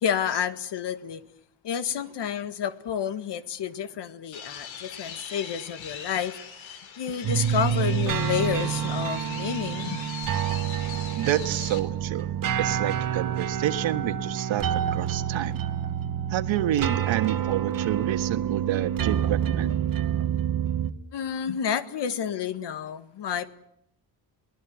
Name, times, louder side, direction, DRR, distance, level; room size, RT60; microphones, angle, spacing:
voice 1, 0.0-1.2 1.6-6.4 6.7-10.1 21.1-23.5, left 8 dB, 65° left, 1.8 m, -30 dB
sound 1, 4.3-11.8, left 7 dB, 85° left, 3.6 m, -40 dB
sound 2, 7.2-20.9, right 9 dB, 45° right, 1.3 m, -28 dB
voice 2, 11.2-12.3 12.6-14.6 14.9-15.6 16.3-19.8, right 12 dB, 90° right, 1.6 m, -28 dB
23.0 x 18.0 x 9.5 m
cardioid pair, 130°, 45 cm